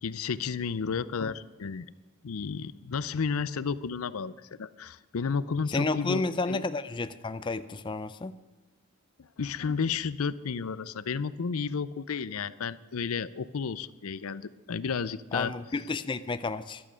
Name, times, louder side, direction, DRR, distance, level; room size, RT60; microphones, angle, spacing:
voice 1, 0.0-1.9 2.2-6.7 9.2-15.8, left 5 dB, 85° left, 17 dB, 0.5 m, -32 dB
voice 2, 5.7-8.4 15.3-16.8, left 3 dB, 20° left, 12 dB, 0.4 m, -31 dB
13.5 x 11.0 x 6.2 m, 1.3 s
head